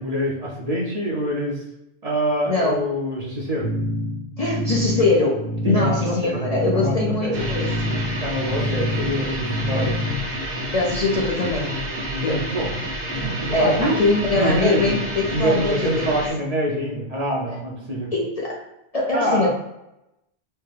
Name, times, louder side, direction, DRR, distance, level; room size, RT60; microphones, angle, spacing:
voice 1, 0.0-1.6 2.0-3.7 5.6-6.5 6.7-7.4 8.2-10.0 12.1-12.7 13.1-13.9 14.3-14.9 15.3-18.1 19.1-19.5, equal, 40° right, -3 dB, 0.7 m, -25 dB
voice 2, 2.5-2.9 4.4-7.9 10.7-11.8 12.2-12.5 13.5-16.1 18.1-18.6 18.9-19.5, left 2 dB, 45° left, -3 dB, 0.6 m, -22 dB
sound 1, 3.6-10.3, left 1 dB, 85° left, 1.5 m, -27 dB
sound 2, 7.3-16.3, equal, 60° right, 1.2 m, -29 dB
4.2 x 2.2 x 3.3 m, 0.88 s
omnidirectional pair, 1.1 m